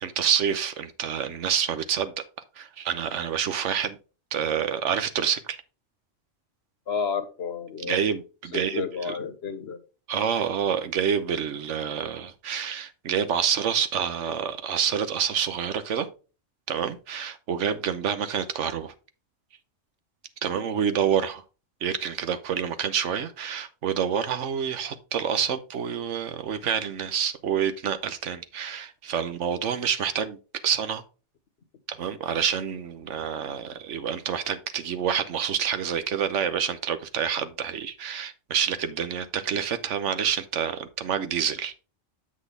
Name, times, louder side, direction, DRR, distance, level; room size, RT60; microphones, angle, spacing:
voice 1, 0.0-2.1 2.6-4.0 4.3-5.6 7.8-9.2 10.1-16.1 16.7-18.9 20.4-21.4 21.8-30.4 30.6-31.0 31.9-41.7, right 8 dB, 85° right, 1.1 m, -27 dB
voice 2, 6.9-8.1 8.5-9.8, left 6 dB, 60° left, 1.2 m, -31 dB
7.6 x 6.2 x 3.4 m
omnidirectional pair, 1.2 m